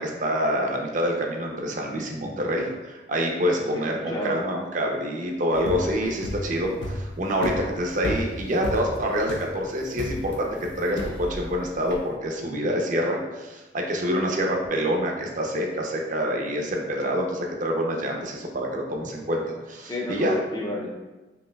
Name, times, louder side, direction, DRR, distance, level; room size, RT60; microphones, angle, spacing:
voice 1, 0.0-20.4, equal, 45° right, 1 dB, 0.6 m, -26 dB
voice 2, 3.5-4.4 19.9-20.9, left 1 dB, 20° left, -2 dB, 0.4 m, -32 dB
sound 1, 5.5-12.1, equal, 90° left, 0.5 m, -33 dB
5.4 x 2.7 x 2.2 m, 1.1 s
head